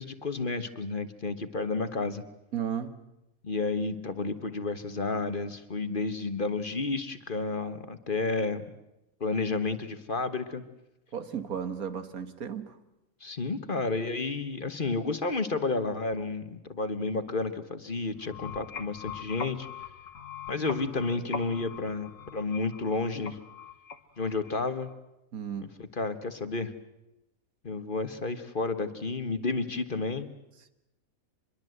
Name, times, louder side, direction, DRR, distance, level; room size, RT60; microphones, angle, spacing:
voice 1, 0.0-2.2 3.4-8.6 9.2-10.6 13.2-19.7 20.5-23.4 24.2-24.9 25.8-26.7 27.6-30.3, left 3 dB, 40° left, 10 dB, 1.4 m, -31 dB
voice 2, 2.5-2.9 11.1-12.7 25.3-25.7, right 8 dB, 80° right, 10 dB, 2.0 m, -34 dB
sound 1, 18.1-24.9, left 7 dB, 65° left, 1.6 m, -42 dB
26.0 x 22.0 x 7.9 m, 0.92 s
omnidirectional pair, 1.5 m